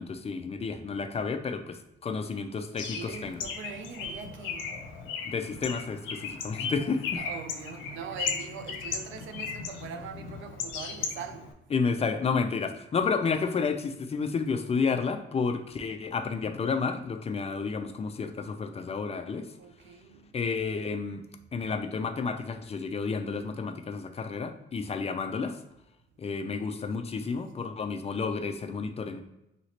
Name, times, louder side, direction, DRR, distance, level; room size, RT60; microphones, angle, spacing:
voice 1, 0.0-1.8 2.0-3.4 5.2-7.2 11.7-19.5 20.3-21.2 21.5-25.6 26.2-29.2, left 5 dB, 30° left, 0.4 m, -31 dB
Bird, 2.8-11.5, left 6 dB, 85° left, 0.6 m, -36 dB
voice 2, 2.9-4.8 6.7-11.6 19.6-20.4, right 7 dB, 75° right, 0.5 m, -42 dB
3.0 x 2.8 x 2.8 m
cardioid pair, 90°, 20 cm